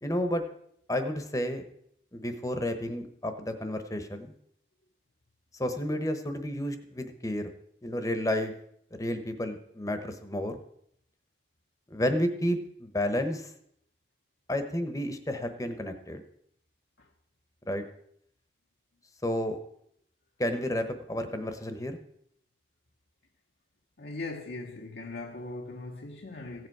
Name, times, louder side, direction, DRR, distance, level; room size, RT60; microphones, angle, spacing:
voice 1, 0.0-0.4 0.9-1.6 2.1-4.3 5.5-7.5 7.8-8.5 9.0-10.6 11.9-13.5 14.5-16.2 17.6-17.8 19.2-19.6 20.4-22.0, left 1 dB, 20° left, 0.9 m, -31 dB
voice 2, 24.0-26.7, left 2 dB, 65° left, 0.9 m, -39 dB
15.5 x 7.8 x 4.7 m
head